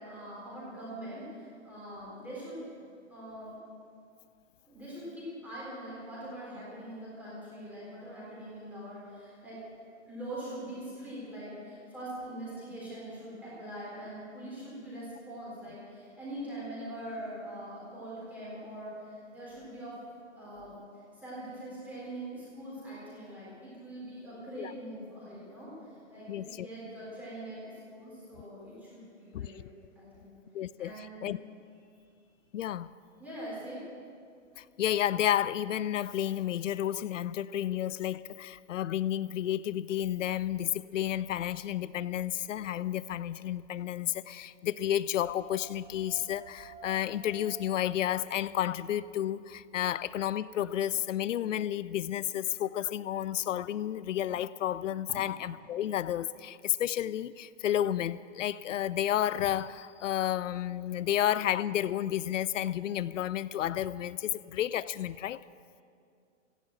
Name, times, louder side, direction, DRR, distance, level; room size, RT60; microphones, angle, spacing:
voice 1, 0.0-2.6 3.1-3.6 4.7-9.6 10.1-20.0 20.4-20.7 21.1-29.6 30.0-30.3 30.8-31.3 33.2-33.8 55.1-55.2, right 1 dB, 5° right, -8 dB, 3.9 m, -43 dB
voice 2, 26.3-26.7 29.3-29.5 30.5-31.4 32.5-32.9 34.6-65.4, left 11 dB, 80° left, 18 dB, 0.6 m, -31 dB
sound 1, 45.2-50.1, right 6 dB, 35° right, 1.8 m, -53 dB
14.5 x 11.5 x 7.7 m, 2.4 s
hypercardioid pair, 180°, 37 cm